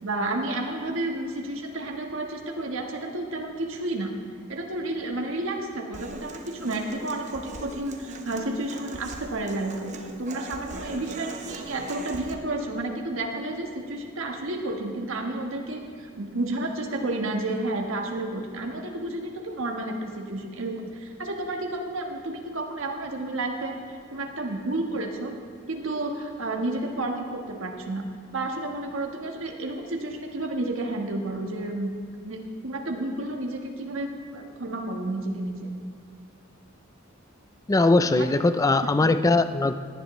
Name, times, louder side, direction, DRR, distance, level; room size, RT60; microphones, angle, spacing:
voice 1, 0.0-4.1 4.5-23.7 24.1-25.3 25.7-28.0 28.3-31.9 32.2-35.7 38.0-38.3 38.8-38.9, right 2 dB, 70° right, 2 dB, 1.4 m, -31 dB
Human voice / Acoustic guitar, 5.9-12.3, right 2 dB, 35° right, 0.9 m, -40 dB
voice 2, 37.7-39.7, left 2 dB, 15° left, 11 dB, 0.3 m, -20 dB
18.0 x 10.0 x 3.2 m, 2.2 s
head